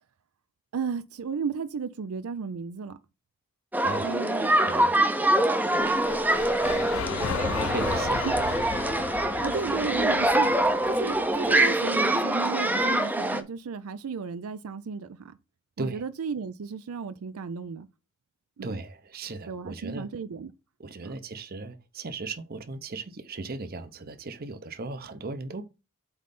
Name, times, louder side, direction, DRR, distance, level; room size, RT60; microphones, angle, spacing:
voice 1, 0.7-3.0 4.0-4.6 8.2-8.3 9.4-10.6 10.9-15.4 15.8-17.9 18.6-18.8 19.5-20.5 21.0-21.1, right 5 dB, 85° right, 0.5 m, -34 dB
sound 1, 3.7-13.4, right 1 dB, 10° right, 0.6 m, -24 dB
voice 2, 4.4-5.0 7.4-8.3 15.8-16.0 18.6-20.1 20.8-25.6, right 3 dB, 45° right, 0.7 m, -37 dB
sound 2, 5.7-11.9, left 7 dB, 70° left, 0.4 m, -35 dB
8.1 x 3.2 x 5.3 m
head